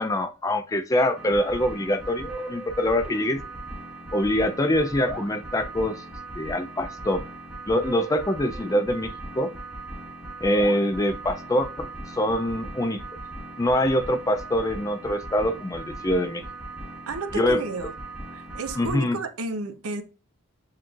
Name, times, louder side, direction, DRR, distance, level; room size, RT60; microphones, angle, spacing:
voice 1, 0.0-3.4 4.1-6.0 6.4-7.2 7.7-9.5 10.4-13.0 13.6-16.4 17.3-17.6 18.8-19.2, left 1 dB, 15° left, 0.3 m, -24 dB
sound 1, 1.1-18.9, right 2 dB, 5° right, 1.2 m, -38 dB
voice 2, 17.1-17.9 18.3-20.0, right 3 dB, 85° right, 0.6 m, -32 dB
7.3 x 3.0 x 2.4 m
head